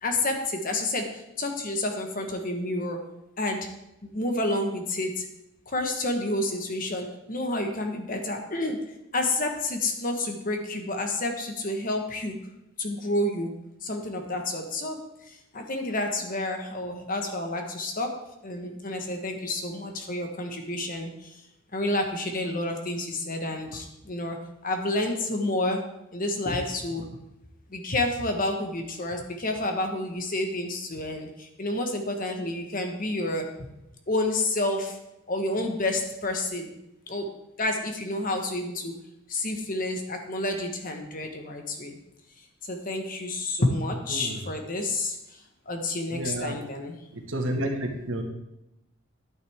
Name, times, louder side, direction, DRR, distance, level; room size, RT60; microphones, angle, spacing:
voice 1, 0.0-3.0 3.4-3.7 4.1-5.3 5.7-8.8 9.1-12.4 12.8-21.4 21.7-27.1 27.7-33.5 34.1-35.0 35.3-36.7 37.1-39.0 39.3-41.9 42.6-47.0, left 2 dB, 40° left, 4 dB, 1.3 m, -29 dB
voice 2, 46.1-46.6 47.3-48.2, right 1 dB, 65° right, 2 dB, 1.7 m, -30 dB
11.0 x 9.5 x 3.6 m, 0.89 s
head